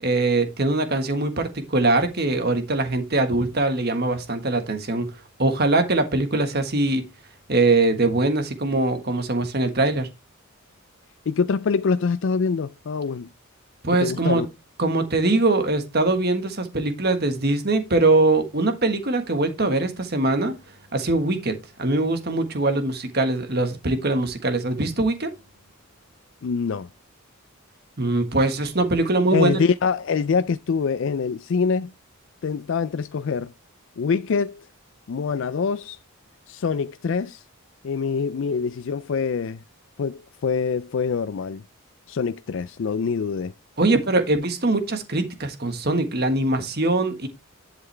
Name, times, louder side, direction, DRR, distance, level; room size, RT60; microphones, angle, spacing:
voice 1, 0.0-5.1 5.4-7.0 7.5-10.1 13.8-14.4 14.8-20.6 20.9-25.3 28.0-29.6 43.8-47.3, right 2 dB, 45° right, 1.5 m, -22 dB
voice 2, 11.3-13.3 14.0-14.5 26.4-26.9 29.3-31.9 32.4-33.5 34.0-34.7 35.1-36.0 36.5-37.4 37.8-39.6 40.0-41.6 42.1-43.5, left 5 dB, 60° left, 0.4 m, -25 dB
11.0 x 5.7 x 3.3 m
head